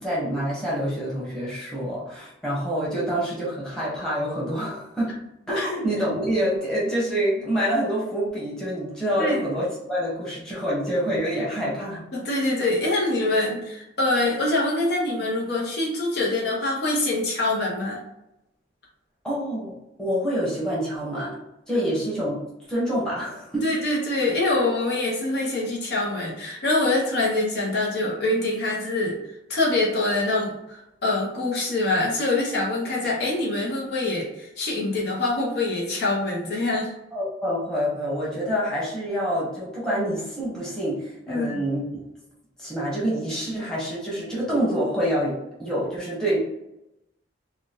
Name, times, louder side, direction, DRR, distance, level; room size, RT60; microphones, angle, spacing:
voice 1, 0.0-5.2 5.5-12.0 19.2-19.7 20.0-21.4 21.7-22.4 22.7-23.6 37.1-41.8 42.6-46.4, equal, 5° left, -8 dB, 0.9 m, -26 dB
voice 2, 12.1-18.0 23.6-29.2 29.5-36.9 41.3-41.6, left 2 dB, 55° left, -3 dB, 0.7 m, -25 dB
2.8 x 2.1 x 3.3 m, 0.88 s
head